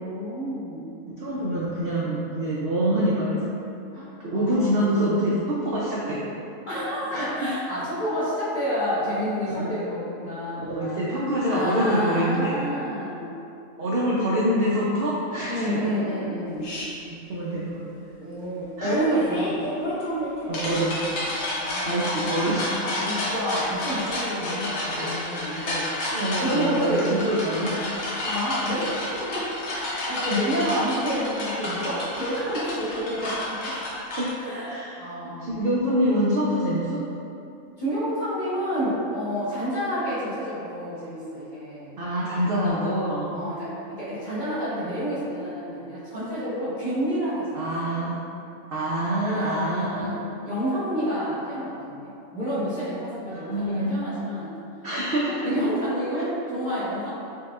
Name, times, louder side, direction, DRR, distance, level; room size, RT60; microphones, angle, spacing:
voice 1, 0.0-0.9 3.9-5.0 6.7-11.1 11.5-13.4 15.5-16.7 18.2-19.9 21.5-22.2 22.7-25.9 26.4-27.1 28.2-33.8 34.4-35.7 37.8-42.0 43.3-47.7 49.2-52.0 52.3-54.5 55.4-57.1, equal, 35° left, -12 dB, 1.3 m, -29 dB
voice 2, 1.0-3.4 4.2-6.2 7.1-7.3 9.5-9.7 10.6-12.7 13.8-15.9 17.0-17.8 18.8-19.0 20.5-21.0 21.8-22.7 25.0-25.1 25.5-27.8 34.2-35.0 35.4-37.0 42.0-43.3 47.5-48.2 48.7-50.1 53.3-54.0 54.8-55.6, equal, 65° right, -6 dB, 0.6 m, -26 dB
sound 1, 16.6-16.9 18.8-34.3, left 1 dB, 60° left, 0.9 m, -30 dB
4.6 x 2.9 x 2.3 m, 2.7 s
omnidirectional pair, 1.4 m